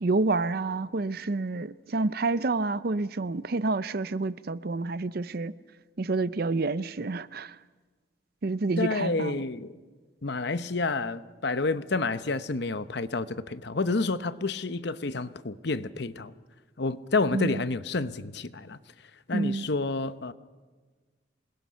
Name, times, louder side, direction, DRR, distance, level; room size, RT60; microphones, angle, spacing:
voice 1, 0.0-5.5 6.0-7.5 8.4-9.4 17.3-17.5 19.3-19.7, right 3 dB, 50° right, 0.6 m, -28 dB
voice 2, 8.8-9.8 10.2-16.3 16.8-18.8 19.3-20.3, left 3 dB, 55° left, 0.8 m, -29 dB
27.5 x 21.0 x 5.7 m
head